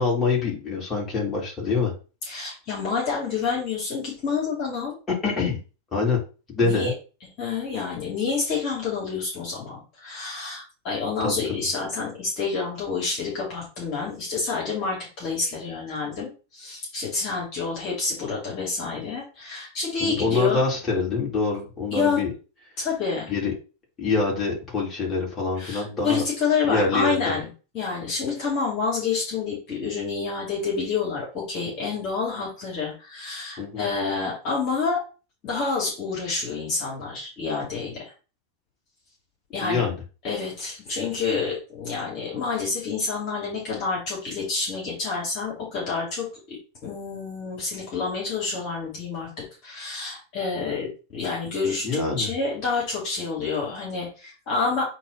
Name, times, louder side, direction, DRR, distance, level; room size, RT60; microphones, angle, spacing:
voice 1, 0.0-1.9 5.1-5.6 5.9-6.2 6.5-6.9 11.2-11.6 20.0-22.3 23.3-23.5 24.0-26.2 26.6-27.3 33.6-33.9 39.6-39.9 51.8-52.3, left 4 dB, 20° left, -4 dB, 3.5 m, -25 dB
voice 2, 2.2-5.0 6.6-6.9 7.4-20.7 21.9-22.2 22.8-23.3 25.6-27.5 27.7-35.0 35.4-38.1 39.5-39.9 40.2-46.6 46.8-49.3 49.6-54.8, left 4 dB, 40° left, -3 dB, 2.8 m, -28 dB
8.3 x 3.1 x 4.1 m, 0.33 s
figure-of-eight pair, 90°, 0 cm